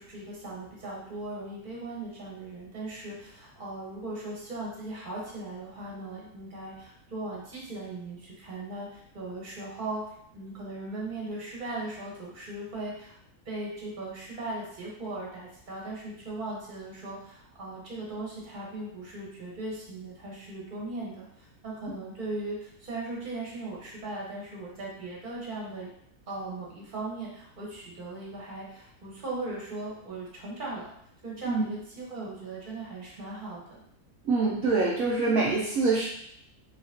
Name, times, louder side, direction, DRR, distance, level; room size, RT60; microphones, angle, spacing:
voice 1, 0.0-10.0 10.3-13.1 13.4-25.9 26.3-30.9 31.2-33.8, right 2 dB, 35° right, -4 dB, 1.3 m, -38 dB
voice 2, 34.2-36.1, right 3 dB, 70° right, -4 dB, 1.0 m, -25 dB
5.0 x 2.9 x 2.8 m, 0.71 s
omnidirectional pair, 1.6 m